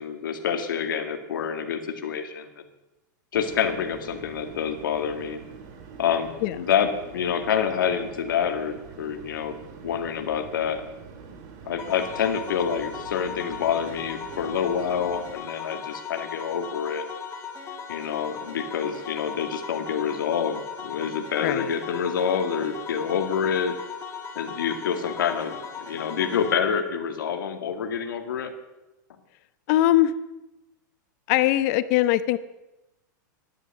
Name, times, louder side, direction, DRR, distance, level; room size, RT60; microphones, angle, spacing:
voice 1, 0.0-2.6 3.3-5.4 6.0-9.6 9.8-10.8 11.7-17.1 17.9-23.8 24.4-28.5, left 7 dB, 85° left, 6 dB, 2.0 m, -27 dB
sound 1, 3.3-15.3, right 6 dB, 50° right, 2.5 m, -44 dB
sound 2, 11.8-26.6, left 6 dB, 25° left, 2.0 m, -38 dB
voice 2, 21.4-21.7 29.7-30.1 31.3-32.4, left 14 dB, 50° left, 14 dB, 0.8 m, -21 dB
13.5 x 11.0 x 6.7 m, 0.97 s
hypercardioid pair, 135°, 11 cm